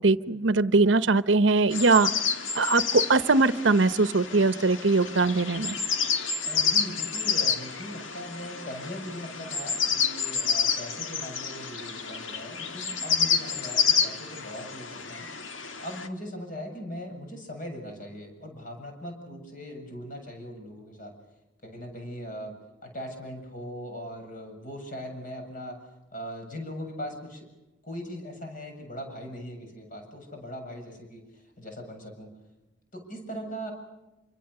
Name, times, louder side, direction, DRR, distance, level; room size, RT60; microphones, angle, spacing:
voice 1, 0.0-2.1 2.5-5.8, right 3 dB, 70° right, 14 dB, 0.9 m, -21 dB
sound 1, 1.7-16.1, left 6 dB, 75° left, 2.1 m, -29 dB
voice 2, 6.4-15.3 15.8-21.1 21.6-25.8 26.1-27.5 27.8-32.3 32.9-33.7, equal, 45° left, 3 dB, 7.5 m, -40 dB
28.0 x 25.0 x 6.8 m, 1.0 s
head